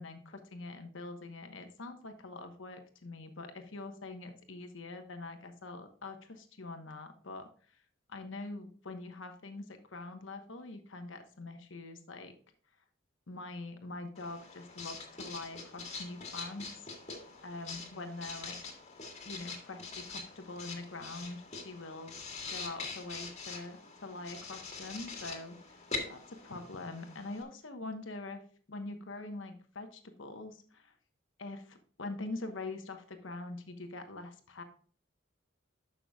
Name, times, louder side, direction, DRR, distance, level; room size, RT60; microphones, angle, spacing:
voice 1, 0.0-7.5 8.1-12.3 13.3-16.7 17.4-18.6 19.2-22.2 22.5-25.6 26.0-28.4 28.7-30.9 31.4-34.6, left 2 dB, 75° left, 7 dB, 1.1 m, -44 dB
Writing, 14.1-27.4, left 4 dB, 35° left, 1.8 m, -44 dB
12.0 x 5.9 x 2.3 m, 0.43 s
head